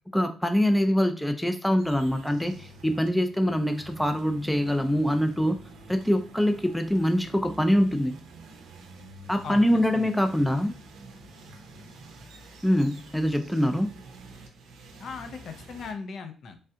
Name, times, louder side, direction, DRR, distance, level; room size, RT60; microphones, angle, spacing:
voice 1, 0.1-5.6 5.9-8.2 9.3-10.7 12.6-13.9, equal, 5° left, 7 dB, 0.3 m, -24 dB
sound 1, 1.8-15.9, right 2 dB, 85° right, 0.6 m, -47 dB
voice 2, 9.4-10.2 15.0-16.6, left 5 dB, 65° left, 6 dB, 0.5 m, -39 dB
3.3 x 2.3 x 2.7 m, 0.36 s
cardioid pair, 90°, 0 cm